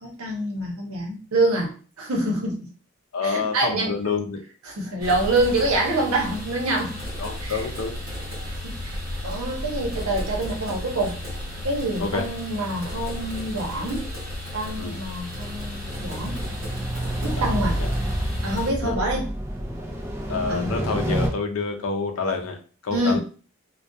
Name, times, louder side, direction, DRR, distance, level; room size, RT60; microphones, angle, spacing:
voice 1, 0.0-2.7 3.2-3.9 4.7-7.0 7.4-7.6 8.6-9.0 9.2-11.2 11.6-14.1 14.5-16.4 17.2-17.8 18.4-19.3 20.5-20.7 22.9-23.2, right 2 dB, 85° right, 0 dB, 0.8 m, -26 dB
voice 2, 3.1-4.4 7.2-8.0 12.0-12.2 14.8-15.0 17.4-17.9 18.8-19.0 20.3-23.2, left 4 dB, 80° left, 5 dB, 0.5 m, -28 dB
sound 1, 5.0-18.7, left 1 dB, 45° right, 1.1 m, -35 dB
sound 2, 8.2-13.7, equal, 25° left, 0.9 m, -37 dB
sound 3, 15.3-21.3, right 1 dB, 15° right, 0.5 m, -28 dB
2.3 x 2.2 x 2.6 m, 0.38 s
head